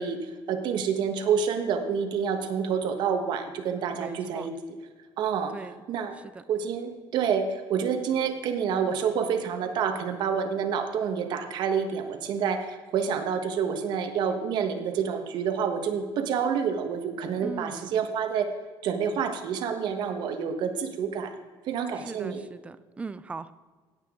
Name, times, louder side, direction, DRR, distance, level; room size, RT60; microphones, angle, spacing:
voice 1, 0.0-4.5 5.2-5.6 5.9-6.2 6.5-18.6 18.8-21.4 21.7-22.4, right 7 dB, 55° right, 7 dB, 1.2 m, -28 dB
voice 2, 3.9-4.5 5.5-5.8 6.2-6.4 17.4-17.9 22.0-23.5, right 4 dB, 15° right, 14 dB, 0.4 m, -39 dB
17.0 x 8.2 x 3.7 m, 1.4 s
cardioid pair, 165°, 9 cm